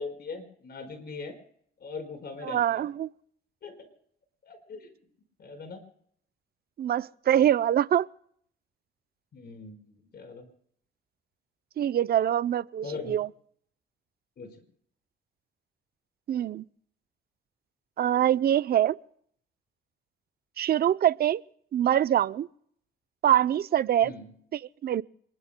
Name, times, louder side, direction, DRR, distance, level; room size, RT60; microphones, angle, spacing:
voice 1, 0.0-1.4 1.8-2.9 3.6-3.9 4.4-4.9 5.4-5.8 9.3-10.5 12.8-13.1 14.4-14.5 24.0-24.3, left 4 dB, 55° left, 4.8 m, -40 dB
voice 2, 2.4-3.1 6.8-8.1 11.8-13.3 16.3-16.7 18.0-19.0 20.6-21.4 21.7-22.5 23.2-24.1 24.5-25.0, right 11 dB, 50° right, 0.5 m, -24 dB
27.5 x 21.5 x 2.2 m
cardioid pair, 90°, 20 cm